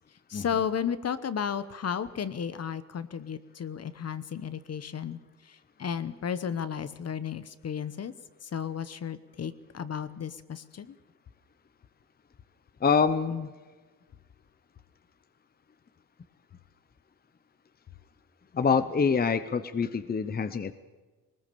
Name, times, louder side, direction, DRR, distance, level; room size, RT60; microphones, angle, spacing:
voice 1, 0.3-8.1 8.4-11.0, left 7 dB, 45° left, 14 dB, 1.0 m, -33 dB
voice 2, 12.8-13.5 18.5-20.7, left 5 dB, 25° left, 12 dB, 0.8 m, -25 dB
20.0 x 19.5 x 6.9 m, 1.3 s
cardioid pair, 100°, 34 cm